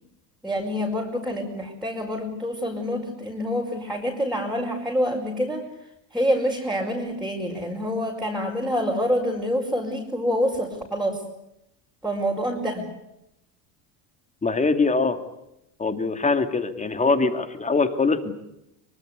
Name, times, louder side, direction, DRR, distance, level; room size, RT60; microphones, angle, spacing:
voice 1, 0.4-5.7 6.1-11.2 12.0-12.9, equal, ahead, -3 dB, 5.4 m, -26 dB
voice 2, 14.4-15.2 15.8-18.3, left 3 dB, 15° left, 9 dB, 2.7 m, -22 dB
24.0 x 24.0 x 8.4 m, 0.83 s
supercardioid pair, 120°, 45 cm